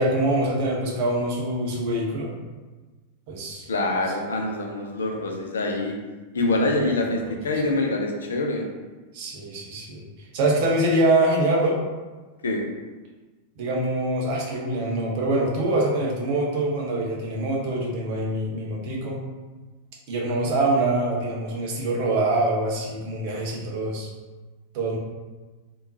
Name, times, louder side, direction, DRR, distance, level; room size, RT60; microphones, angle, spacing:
voice 1, 0.0-2.3 3.3-3.6 7.0-7.4 9.1-10.0 10.3-11.8 13.6-19.2 20.1-24.1 24.7-25.0, right 2 dB, 50° right, -2 dB, 0.8 m, -24 dB
voice 2, 3.7-5.9 6.3-8.6 12.4-12.6, left 2 dB, 70° left, 2 dB, 0.5 m, -25 dB
3.6 x 2.8 x 2.7 m, 1.3 s
figure-of-eight pair, 90°, 0 cm